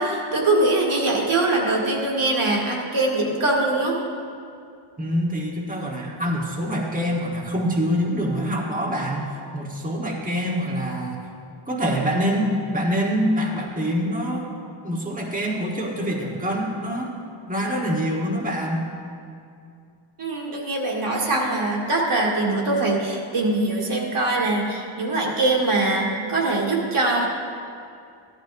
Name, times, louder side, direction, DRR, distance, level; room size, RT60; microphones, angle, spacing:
voice 1, 0.0-4.0 20.2-27.3, right 2 dB, 85° right, -2 dB, 1.9 m, -22 dB
voice 2, 5.0-11.2 11.7-14.5 14.8-17.2 17.5-18.9, equal, 15° right, -2 dB, 1.3 m, -25 dB
14.5 x 12.0 x 2.6 m, 2.4 s
wide cardioid pair, 150°, 49 cm